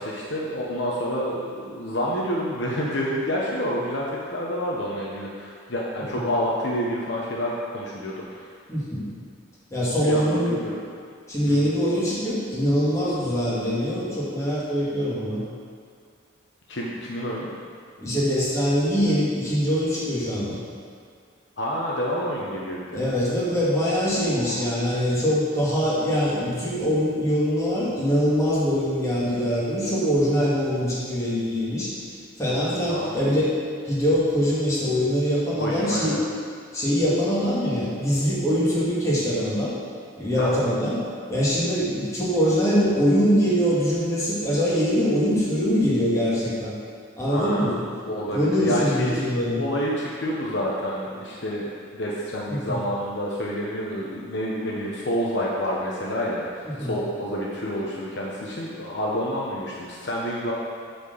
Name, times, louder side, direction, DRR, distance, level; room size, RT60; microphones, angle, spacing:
voice 1, 0.0-8.5 10.0-10.8 11.5-11.7 16.7-17.5 21.6-23.1 24.1-24.6 32.9-33.3 35.6-36.2 40.4-40.6 47.3-47.8 48.1-49.3 49.5-60.5, equal, 60° left, -4 dB, 1.0 m, -28 dB
voice 2, 8.7-9.1 9.7-10.6 11.3-15.4 18.0-20.6 22.9-31.9 32.4-33.5 33.9-36.1 36.7-39.7 40.2-41.0 41.3-46.7 47.2-47.8 48.3-49.6 52.5-52.8 56.6-57.0, equal, 15° left, -8 dB, 2.2 m, -23 dB
8.0 x 4.5 x 6.9 m, 2.3 s
head